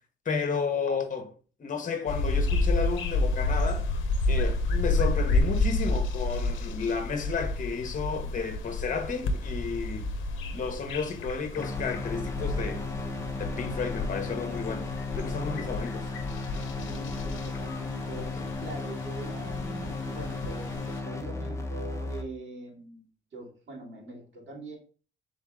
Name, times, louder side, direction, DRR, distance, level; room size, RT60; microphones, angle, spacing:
voice 1, 0.2-1.3 1.6-3.9 4.3-10.1 10.5-12.8 13.4-14.9 15.1-16.1, left 5 dB, 40° left, 1.0 m, -32 dB
sound 1, 2.1-21.0, left 2 dB, 80° left, 0.7 m, -30 dB
sound 2, 11.6-22.2, left 3 dB, 15° left, 0.7 m, -35 dB
voice 2, 16.8-23.1 23.3-24.8, right 2 dB, 65° right, 2.4 m, -43 dB
4.0 x 3.6 x 3.5 m
cardioid pair, 90°, 20 cm